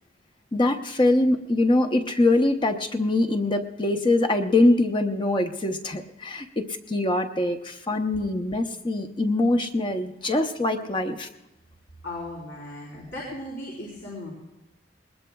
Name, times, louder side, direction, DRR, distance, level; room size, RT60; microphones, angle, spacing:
voice 1, 0.5-11.3, left 2 dB, 25° left, 6 dB, 0.7 m, -23 dB
voice 2, 12.0-14.3, left 1 dB, 70° left, -4 dB, 4.0 m, -37 dB
21.0 x 20.0 x 2.3 m, 0.93 s
head